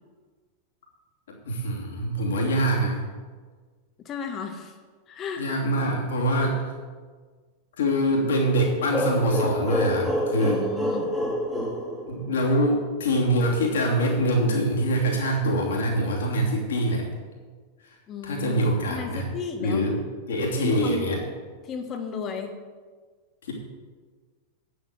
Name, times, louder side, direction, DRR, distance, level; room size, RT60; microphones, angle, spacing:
voice 1, 1.3-3.0 5.4-6.6 7.8-10.6 12.1-17.1 17.9-18.0 18.2-19.3 19.6-21.2 23.4-23.5, equal, 60° left, -2 dB, 2.9 m, -24 dB
voice 2, 4.1-4.7 5.1-5.5 10.4-11.1 18.1-20.0 20.6-21.1 21.6-22.6, left 6 dB, 30° left, 5 dB, 1.6 m, -34 dB
sound 1, 8.9-12.6, equal, ahead, 2.4 m, -27 dB
9.1 x 8.1 x 7.7 m, 1.5 s
figure-of-eight pair, 90°, 0 cm